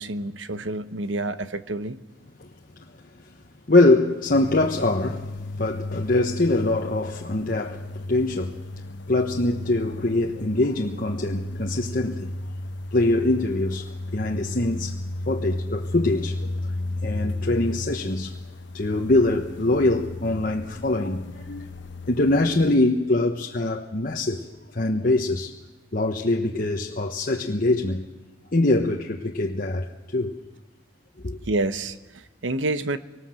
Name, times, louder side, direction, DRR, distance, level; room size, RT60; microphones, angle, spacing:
voice 1, 0.0-2.0 31.5-33.0, right 2 dB, 90° right, 1.0 m, -28 dB
voice 2, 3.7-5.3 5.6-8.6 9.1-12.3 12.9-15.0 15.3-16.7 17.0-18.3 18.7-21.7 22.1-24.4 24.7-25.6 25.9-28.1 28.5-30.4 31.2-31.4, left 2 dB, 50° left, 1.2 m, -23 dB
sound 1, 4.3-22.7, left 2 dB, 70° left, 1.0 m, -34 dB
24.0 x 19.0 x 7.7 m
head